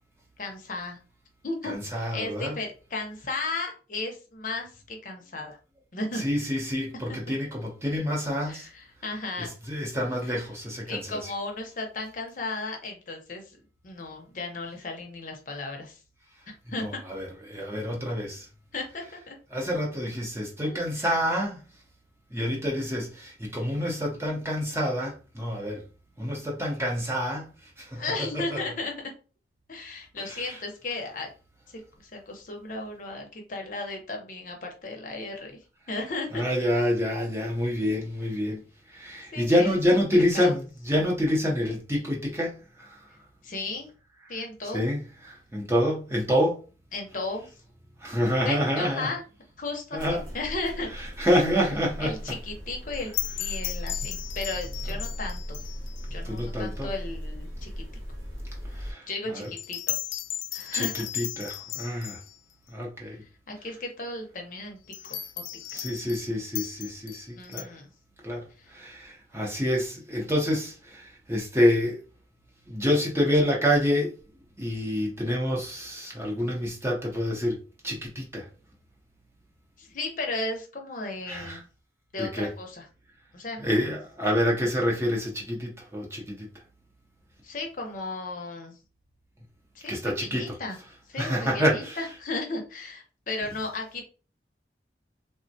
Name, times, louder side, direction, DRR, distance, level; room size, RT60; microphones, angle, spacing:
voice 1, 0.4-1.0 1.4-5.6 5.9-6.2 8.5-9.5 10.9-13.6 13.8-16.0 16.5-17.0 18.7-19.4 20.6-21.1 27.9-28.9 29.7-31.3 31.7-35.6 35.9-36.4 39.3-40.5 43.4-43.9 44.3-44.8 46.9-47.6 48.5-49.2 49.6-50.9 52.0-53.1 53.4-55.6 56.1-57.7 58.7-60.0 60.5-61.0 63.0-64.8 65.1-65.2 65.7-65.9 67.4-67.9 68.6-68.7 79.8-81.7 82.1-82.9 83.3-83.8 87.4-88.8 89.7-90.8 91.1-94.0, left 3 dB, 45° left, 0.6 m, -35 dB
voice 2, 1.7-2.6 6.1-8.7 9.4-11.3 16.8-18.5 19.5-21.7 22.3-25.8 26.2-28.0 28.3-28.6 30.2-30.6 36.3-43.1 44.7-46.6 48.0-49.1 49.9-50.2 51.0-52.1 56.2-56.9 58.7-59.5 60.7-62.2 62.7-63.2 65.7-67.7 68.2-72.0 72.7-74.1 74.6-78.5 81.3-81.6 82.2-82.5 83.6-86.5 89.9-90.6 91.2-92.0, equal, 15° right, 0.7 m, -27 dB
sound 1, 50.0-58.9, equal, 85° right, 1.0 m, -37 dB
sound 2, 52.9-56.1 56.4-56.5 59.4-62.3 64.9-66.3 66.5-67.6, left 13 dB, 90° left, 0.3 m, -35 dB
3.3 x 2.1 x 2.6 m
head